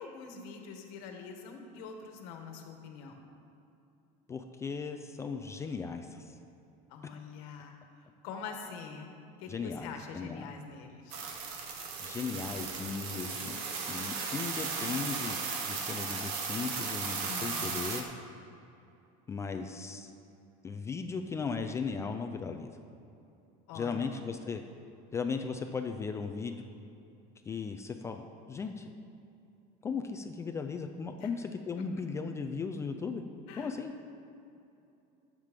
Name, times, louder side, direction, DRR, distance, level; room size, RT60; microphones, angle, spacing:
voice 1, 0.0-3.2 6.9-9.1 9.4-11.2 17.2-17.8 23.7-24.1 31.2-31.3 33.5-33.8, left 5 dB, 65° left, 4 dB, 1.4 m, -45 dB
voice 2, 4.3-6.3 9.5-10.5 12.0-13.6 13.9-18.0 19.3-20.1 20.6-22.7 23.7-24.6 25.1-26.6 27.5-28.9 29.8-33.2 33.6-33.9, left 5 dB, 15° left, 5 dB, 0.3 m, -37 dB
sound 1, 11.1-18.0, right 5 dB, 70° right, 1.4 m, -36 dB
13.5 x 7.4 x 5.1 m, 2.7 s
cardioid pair, 175°, 21 cm